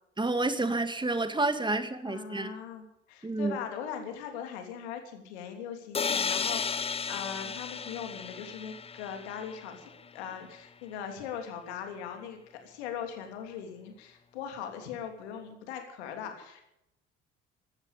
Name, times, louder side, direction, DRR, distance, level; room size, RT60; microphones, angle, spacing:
voice 1, 0.2-2.5 3.2-3.6, right 2 dB, 15° right, 9 dB, 2.2 m, -29 dB
voice 2, 2.0-16.7, left 8 dB, 65° left, 5 dB, 3.3 m, -40 dB
sound 1, 5.9-9.8, left 5 dB, 15° left, 0.7 m, -33 dB
15.5 x 13.0 x 7.2 m, 0.82 s
figure-of-eight pair, 55°, 35 cm